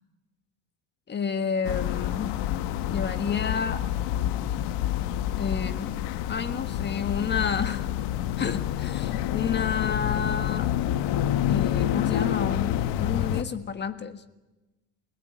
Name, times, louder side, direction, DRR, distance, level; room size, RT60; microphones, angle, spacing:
voice 1, 1.1-2.3 2.9-3.8 5.4-6.0 6.3-7.9 8.4-10.7 11.5-14.2, left 6 dB, 20° left, 10 dB, 1.5 m, -30 dB
sound 1, 1.6-13.4, left 11 dB, 60° left, 1.4 m, -28 dB
29.5 x 18.5 x 9.0 m, 1.1 s
cardioid pair, 140°, 47 cm